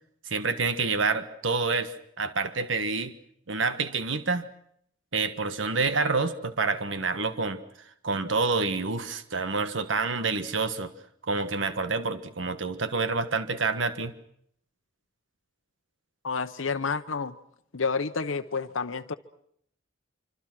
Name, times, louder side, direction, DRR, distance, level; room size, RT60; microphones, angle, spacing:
voice 1, 0.3-3.1 3.5-4.5 5.1-7.6 8.0-10.9 11.3-14.1, right 4 dB, 70° right, 11 dB, 1.4 m, -28 dB
voice 2, 16.2-17.3 17.7-19.1, left 5 dB, 90° left, 7 dB, 0.9 m, -29 dB
25.5 x 25.5 x 6.1 m, 0.69 s
head